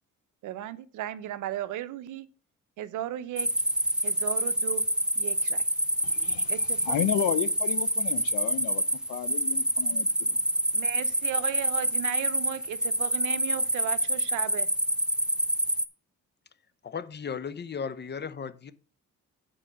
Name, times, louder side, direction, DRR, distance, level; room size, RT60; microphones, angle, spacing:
voice 1, 0.4-2.3 2.8-3.5 4.0-4.8 5.2-5.6 6.5-7.0 9.9-10.0 10.7-14.7, right 12 dB, 80° right, 0.8 m, -35 dB
sound 1, 3.4-15.9, right 1 dB, 5° right, 0.6 m, -27 dB
voice 2, 6.0-6.5 6.8-8.8 9.1-10.4, left 11 dB, 85° left, 0.7 m, -32 dB
voice 3, 16.8-18.7, left 6 dB, 35° left, 0.8 m, -35 dB
8.9 x 4.6 x 6.0 m
cardioid pair, 90°, 30 cm